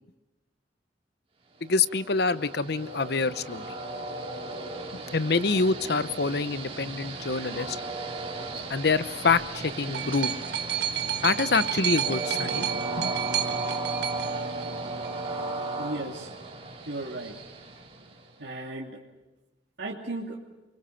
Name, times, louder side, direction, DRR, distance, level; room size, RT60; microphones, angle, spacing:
voice 1, 1.6-3.7 5.1-7.8 8.7-10.3 11.2-12.7 13.0-13.1, left 4 dB, 65° left, 14 dB, 0.9 m, -26 dB
Train, 1.7-18.4, right 2 dB, 35° right, 3.2 m, -36 dB
sound 1, 9.3-15.3 16.2-16.3, right 10 dB, 70° right, 1.4 m, -31 dB
voice 2, 15.8-16.3 16.8-17.4 18.4-19.0 19.8-20.4, right 2 dB, 90° right, -4 dB, 2.7 m, -35 dB
29.5 x 23.5 x 5.8 m, 1.1 s
head